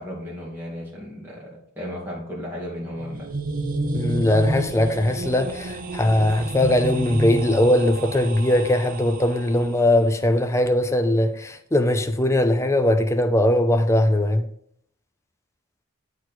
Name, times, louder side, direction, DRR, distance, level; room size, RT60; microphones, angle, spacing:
voice 1, 0.0-3.3, equal, 10° right, 2.3 m, -35 dB
sound 1, 2.8-9.8, right 2 dB, 40° right, 0.6 m, -30 dB
voice 2, 3.9-14.5, left 1 dB, 15° left, 0.5 m, -20 dB
8.0 x 4.4 x 4.3 m
head